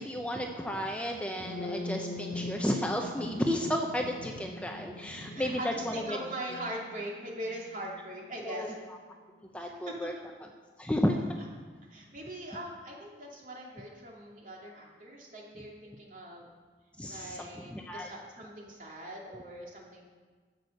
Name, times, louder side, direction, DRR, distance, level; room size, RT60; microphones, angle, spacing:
voice 1, 0.0-6.2 8.4-8.7 9.5-10.1 10.4-10.5 10.8-11.2 17.0-18.1, equal, 5° left, 2 dB, 0.7 m, -32 dB
sound 1, 1.3-9.1, left 2 dB, 90° left, 0.9 m, -42 dB
voice 2, 5.3-8.7 9.6-10.1 11.9-16.5 17.1-20.0, right 1 dB, 45° right, -2 dB, 2.7 m, -41 dB
12.5 x 8.1 x 6.7 m, 1.5 s
head